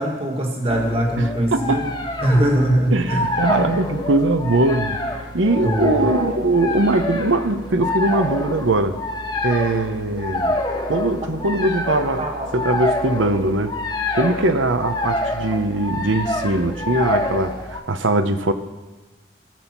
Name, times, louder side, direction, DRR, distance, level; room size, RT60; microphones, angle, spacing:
voice 1, 0.0-1.9 2.2-3.3 5.6-6.1 11.4-11.5 12.2-12.5, right 1 dB, 30° right, 1 dB, 1.7 m, -21 dB
sound 1, 0.7-17.8, left 1 dB, 25° left, 1.2 m, -27 dB
voice 2, 1.2-2.0 2.9-5.0 5.3-9.0 9.4-10.6 10.9-12.3 12.5-13.7 14.1-18.5, right 2 dB, 90° right, 9 dB, 0.9 m, -21 dB
18.5 x 7.2 x 6.0 m, 1.2 s
head